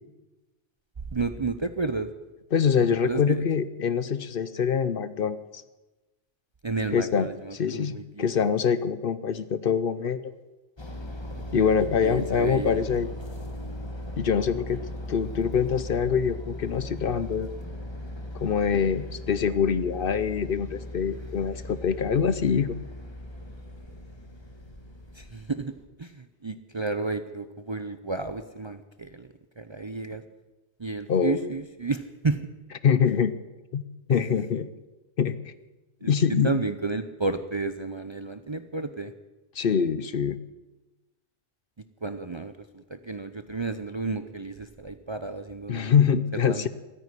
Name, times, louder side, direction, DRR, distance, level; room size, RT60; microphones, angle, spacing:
voice 1, 1.1-2.1 3.0-3.5 6.6-8.3 11.5-11.7 12.0-12.8 14.7-14.8 25.1-29.3 29.6-30.2 30.8-32.5 34.1-34.2 36.0-36.1 36.4-39.1 42.0-45.9 46.3-46.7, right 3 dB, 30° right, 9 dB, 0.6 m, -32 dB
voice 2, 2.5-5.6 6.9-10.3 11.5-13.1 14.2-14.8 15.1-17.5 18.3-22.8 31.1-31.5 32.8-33.3 33.7-33.8 34.1-34.7 35.2-35.4 36.0-36.5 39.6-40.4 45.7-46.7, left 7 dB, 60° left, 15 dB, 0.8 m, -24 dB
sound 1, 10.8-25.8, left 1 dB, 25° left, 1.6 m, -38 dB
14.0 x 9.8 x 9.8 m, 1.1 s
omnidirectional pair, 1.1 m